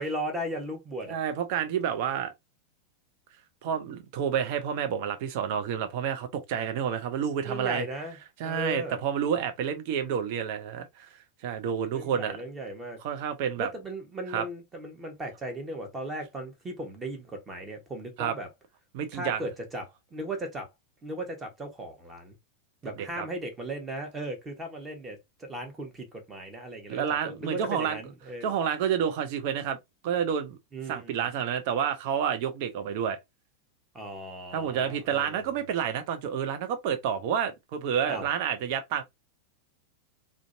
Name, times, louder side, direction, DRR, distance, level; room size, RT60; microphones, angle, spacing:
voice 1, 0.0-1.2 7.5-8.2 8.4-9.0 11.9-13.0 13.6-18.5 19.1-19.8 20.1-20.7 21.0-22.3 22.8-28.5 30.7-31.3 33.9-35.5 38.1-38.3, right 1 dB, 15° right, 1.0 m, -37 dB
voice 2, 1.1-2.3 3.6-7.8 8.4-11.1 11.4-12.4 13.0-13.7 14.3-14.5 18.2-18.4 18.9-19.4 23.0-23.3 26.9-28.0 28.4-29.8 30.0-30.6 30.9-33.2 34.5-39.0, right 8 dB, 45° right, 0.5 m, -29 dB
2.5 x 2.1 x 2.6 m
figure-of-eight pair, 90°, 0 cm